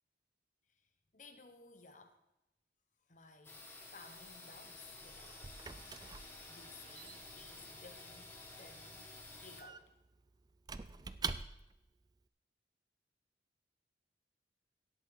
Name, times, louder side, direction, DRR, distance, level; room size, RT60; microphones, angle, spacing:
voice 1, 0.7-2.2 3.1-5.7 6.2-9.9, left 3 dB, 45° left, 7 dB, 1.2 m, -59 dB
sound 1, 3.4-9.6, left 2 dB, 15° left, 1.8 m, -52 dB
Squeak / Wood, 4.7-11.9, right 5 dB, 20° right, 0.4 m, -47 dB
17.0 x 8.2 x 4.1 m, 0.91 s
head